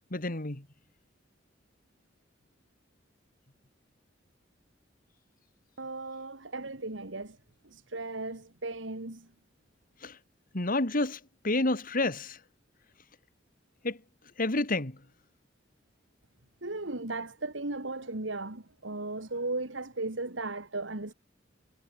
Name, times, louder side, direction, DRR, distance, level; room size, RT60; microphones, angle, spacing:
voice 1, 0.1-0.6 10.0-10.2 10.5-12.4 13.8-14.0 14.4-15.0, left 2 dB, 50° left, 2.4 m, -29 dB
voice 2, 5.8-7.4 7.6-9.3 16.6-21.1, right 2 dB, 80° right, 2.5 m, -36 dB
head